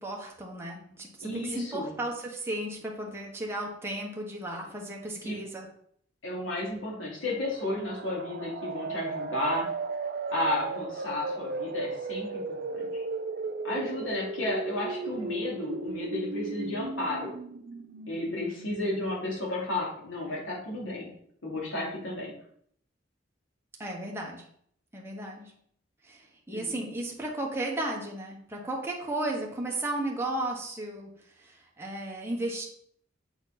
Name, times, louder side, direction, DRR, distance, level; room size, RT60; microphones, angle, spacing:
voice 1, 0.0-5.7 23.8-24.5 24.9-25.5 26.0-31.1 31.4-32.6, right 1 dB, 15° right, -1 dB, 1.4 m, -34 dB
voice 2, 1.2-1.9 5.2-5.4 6.2-9.7 10.3-13.0 13.6-17.3 18.1-21.1 21.4-22.3 26.5-26.7, left 1 dB, 80° left, -4 dB, 2.9 m, -33 dB
sound 1, 7.6-19.3, right 3 dB, 55° right, 0.6 m, -36 dB
8.0 x 4.4 x 4.3 m, 0.65 s
head